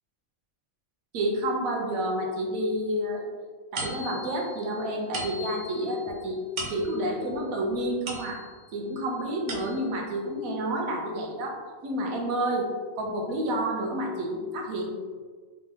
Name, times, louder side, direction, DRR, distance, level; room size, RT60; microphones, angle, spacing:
voice 1, 1.1-3.3 3.7-6.4 6.7-8.4 8.7-11.6 11.8-12.7 12.9-14.9, right 1 dB, 80° right, 0 dB, 1.2 m, -29 dB
sound 1, 3.8-8.7 9.2-10.1, right 1 dB, 60° right, 1.0 m, -39 dB
4.1 x 3.7 x 2.8 m, 1.5 s
omnidirectional pair, 1.5 m